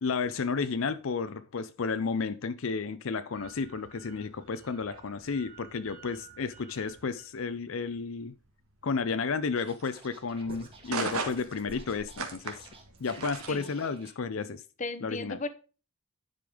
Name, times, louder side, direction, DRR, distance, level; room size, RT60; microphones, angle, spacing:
voice 1, 0.0-8.3 8.8-12.6 13.0-14.6 15.0-15.4, left 4 dB, 65° left, 0.5 m, -32 dB
sound 1, 3.3-13.6, right 4 dB, 80° right, 1.7 m, -41 dB
Scratching (performance technique), 9.6-14.1, right 4 dB, 25° right, 1.8 m, -53 dB
voice 2, 14.8-15.5, left 3 dB, 35° left, 0.8 m, -35 dB
10.5 x 5.2 x 5.0 m
head